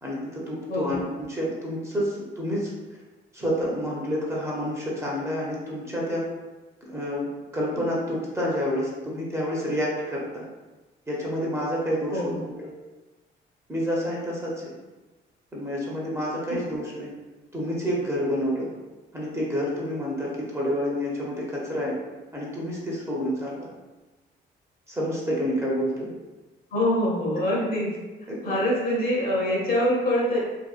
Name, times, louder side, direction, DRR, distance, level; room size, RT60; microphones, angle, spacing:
voice 1, 0.0-2.7 3.3-6.3 6.8-7.3 7.5-10.5 11.1-12.7 13.7-14.7 15.5-17.1 17.5-18.7 19.1-22.0 22.3-23.7 24.9-26.1 28.3-28.4, equal, 15° right, -5 dB, 0.7 m, -28 dB
voice 2, 0.7-1.0 12.1-12.5 26.7-27.9 28.4-30.4, left 1 dB, 45° left, -3 dB, 0.8 m, -24 dB
2.6 x 2.2 x 2.4 m, 1.2 s
cardioid pair, 90°, 20 cm